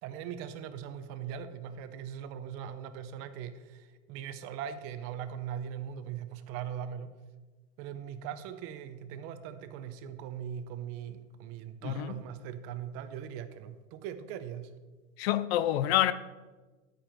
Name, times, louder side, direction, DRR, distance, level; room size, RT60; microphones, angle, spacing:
voice 1, 0.0-7.1 7.8-14.7, right 9 dB, 35° right, 0.7 m, -40 dB
voice 2, 11.8-12.1 15.2-16.1, left 13 dB, 55° left, 0.5 m, -27 dB
11.5 x 9.0 x 4.4 m
supercardioid pair, 155°, 39 cm